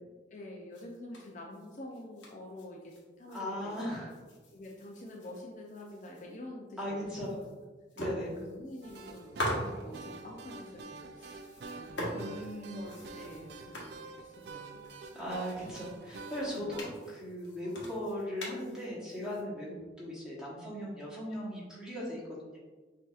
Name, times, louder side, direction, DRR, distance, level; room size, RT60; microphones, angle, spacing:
voice 1, 0.3-3.7 4.5-7.5 8.2-12.3 12.7-14.9 15.6-15.7 16.5-16.8 19.7-19.9, left 1 dB, 40° left, -2 dB, 0.5 m, -47 dB
sound 1, 0.7-3.4 3.7-6.3 6.7-6.8 7.1-7.6 7.9-10.2 11.2-19.4, equal, 80° left, 1.0 m, -43 dB
voice 2, 3.3-4.1 6.8-7.4 8.0-8.3 12.1-12.8 15.1-22.6, equal, 5° right, -8 dB, 1.3 m, -38 dB
sound 2, 8.8-16.8, right 4 dB, 60° right, 0.3 m, -47 dB
6.1 x 2.7 x 2.4 m, 1.3 s
head